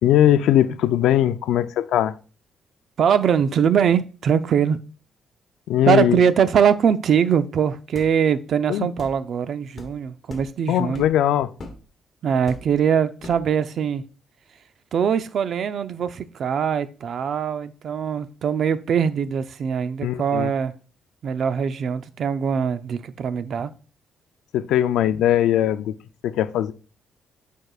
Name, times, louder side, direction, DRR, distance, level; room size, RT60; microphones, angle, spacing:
voice 1, 0.0-2.2 5.7-6.2 8.7-8.9 10.7-11.5 20.0-20.5 24.5-26.0 26.2-26.7, left 11 dB, 85° left, 0.4 m, -20 dB
voice 2, 3.0-4.8 5.9-11.1 12.2-14.0 14.9-20.7 21.2-23.7, right 7 dB, 60° right, 0.5 m, -22 dB
sound 1, 8.0-8.1 9.0-9.2 9.8-9.9 10.3-10.5 10.9-11.2 11.6-11.8 12.5-12.8 13.2-13.5, left 2 dB, 45° left, 1.2 m, -39 dB
8.7 x 4.6 x 2.4 m
cardioid pair, 90°, 0 cm